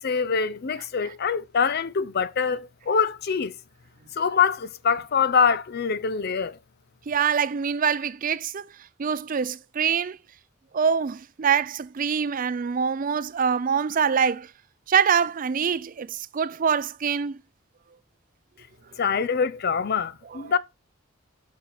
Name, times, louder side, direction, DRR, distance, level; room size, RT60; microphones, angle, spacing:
voice 1, 0.0-3.5 4.2-6.6 19.0-20.6, left 6 dB, 50° left, 0.5 m, -24 dB
voice 2, 7.1-8.7 9.0-10.2 10.7-14.5 14.9-17.4, right 7 dB, 40° right, 0.4 m, -24 dB
7.2 x 6.0 x 3.9 m
head